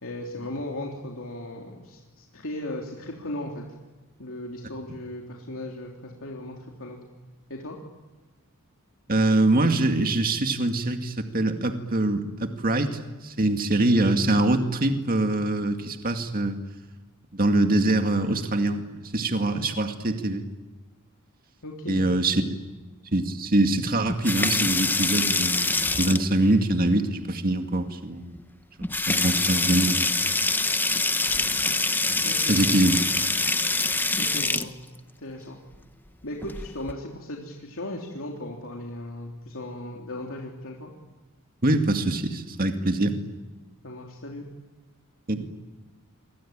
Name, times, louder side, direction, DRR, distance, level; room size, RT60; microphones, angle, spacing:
voice 1, 0.0-3.6 4.2-7.0 7.5-7.8 21.6-22.1 32.2-32.6 34.2-34.7 35.2-35.6 36.2-40.9 43.8-44.5, left 1 dB, 65° left, 0 dB, 3.4 m, -37 dB
voice 2, 9.1-16.6 17.3-20.5 21.9-22.4 23.1-28.4 29.1-30.1 31.4-31.5 32.1-33.0 41.6-43.2 45.3-45.5, right 2 dB, 40° right, 6 dB, 2.2 m, -24 dB
sound 1, 24.1-26.5 27.9-28.0 28.4-28.5 28.8-34.7 36.4-36.9, left 3 dB, 10° left, 0.8 m, -25 dB
27.5 x 24.0 x 8.9 m, 1.2 s
head